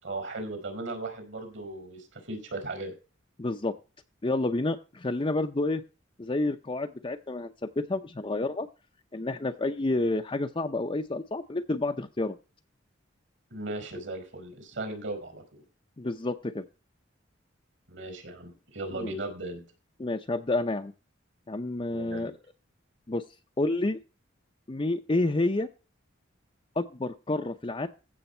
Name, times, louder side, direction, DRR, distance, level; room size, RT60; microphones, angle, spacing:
voice 1, 0.0-2.9 13.5-15.6 17.9-19.6 21.9-22.3, right 2 dB, 65° right, 6 dB, 4.8 m, -37 dB
voice 2, 3.4-3.7 4.2-5.8 6.2-8.7 9.1-12.4 16.0-16.6 19.0-19.1 20.0-20.9 21.5-22.3 23.1-23.2 23.6-24.0 24.7-25.7 26.8-27.9, left 2 dB, 25° left, 4 dB, 0.6 m, -29 dB
15.0 x 7.0 x 4.4 m, 0.33 s
head